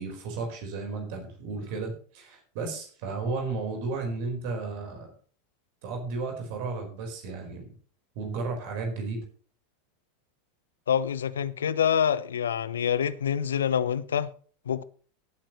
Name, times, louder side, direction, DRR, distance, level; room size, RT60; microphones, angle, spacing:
voice 1, 0.0-5.1 5.8-7.6 8.1-9.2, right 4 dB, 55° right, 4.6 m, -33 dB
voice 2, 10.9-14.3 14.7-14.8, left 8 dB, 70° left, 0.8 m, -26 dB
18.0 x 8.8 x 3.2 m
figure-of-eight pair, 80°, 0 cm